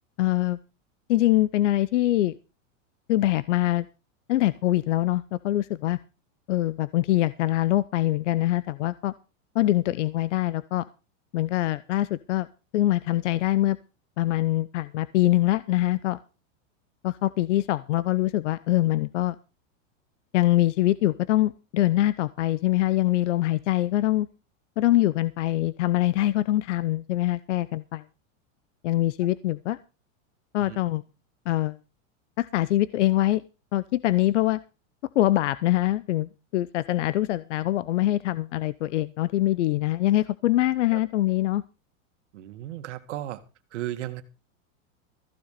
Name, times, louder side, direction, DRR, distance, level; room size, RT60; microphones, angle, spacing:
voice 1, 0.2-0.6 1.1-2.4 3.1-3.9 4.3-6.0 6.5-9.1 9.5-10.8 11.3-12.5 12.7-13.8 14.2-16.2 17.0-19.3 20.3-24.3 24.8-28.0 28.8-29.8 30.5-31.0 31.5-31.8 32.4-33.4 33.7-34.6 35.1-41.6, left 15 dB, 65° left, 17 dB, 0.8 m, -24 dB
voice 2, 42.3-43.4 43.7-44.2, right 14 dB, 60° right, 9 dB, 2.0 m, -35 dB
15.0 x 7.2 x 6.6 m, 0.30 s
supercardioid pair, 180°, 39 cm